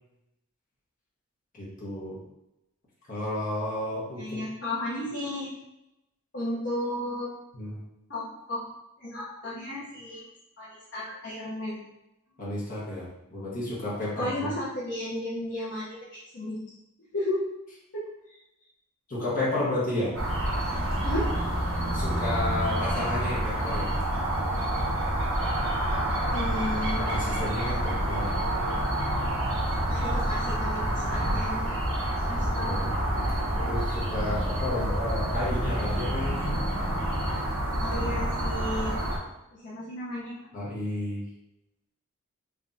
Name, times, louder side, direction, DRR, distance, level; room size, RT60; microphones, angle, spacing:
voice 1, 1.5-2.2 3.1-4.2 7.5-7.8 12.4-14.5 19.1-20.1 21.9-23.9 27.0-28.3 32.3-32.9 33.6-36.6 40.5-41.2, left 1 dB, 40° left, -6 dB, 1.3 m, -32 dB
voice 2, 4.2-5.5 6.3-7.3 8.1-8.7 9.0-10.3 10.6-11.9 14.2-16.6 17.0-17.4 17.9-18.4 19.9-20.1 21.0-21.3 26.3-27.1 29.9-31.7 32.2-32.7 37.8-39.0 39.5-40.4, left 1 dB, 60° left, -7 dB, 0.9 m, -34 dB
sound 1, 20.1-39.2, right 1 dB, 75° right, 1.0 m, -28 dB
3.5 x 3.2 x 2.7 m, 0.90 s
head